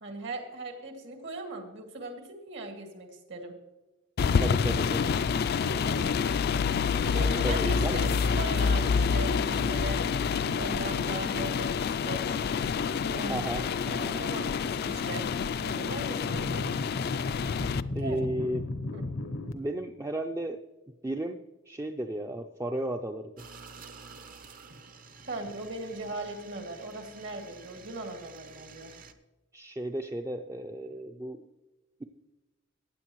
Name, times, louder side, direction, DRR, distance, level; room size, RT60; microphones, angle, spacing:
voice 1, 0.0-3.5 5.6-6.2 7.1-10.0 10.6-12.4 13.0-13.6 13.8-15.3 15.6-16.7 18.0-18.2 18.9-19.0 25.2-28.9, right 2 dB, 65° right, 3 dB, 2.1 m, -39 dB
sound 1, 4.2-17.8, left 6 dB, 55° left, 0.3 m, -28 dB
voice 2, 4.4-5.1 7.4-8.0 13.3-14.3 17.9-18.6 19.5-20.6 21.0-21.4 21.7-23.3 29.5-31.4, right 1 dB, 15° right, 4 dB, 0.4 m, -34 dB
sound 2, 16.3-19.5, left 2 dB, 85° left, 0.8 m, -35 dB
sound 3, 23.4-29.1, right 5 dB, 45° right, 0.8 m, -50 dB
15.5 x 9.5 x 3.0 m, 1.1 s
head